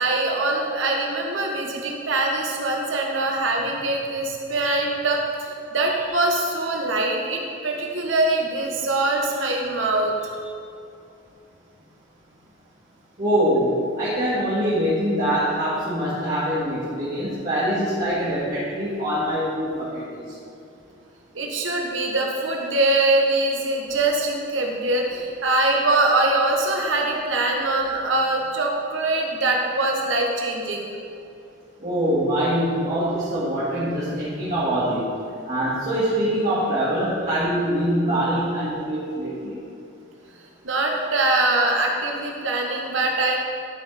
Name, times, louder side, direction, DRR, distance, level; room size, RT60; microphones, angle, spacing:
voice 1, 0.0-10.5 21.3-30.9 40.6-43.4, right 2 dB, 80° right, 0 dB, 1.1 m, -23 dB
voice 2, 13.2-20.2 31.8-35.1 35.4-39.6, equal, 40° right, -11 dB, 2.1 m, -24 dB
12.0 x 5.0 x 4.2 m, 2.5 s
head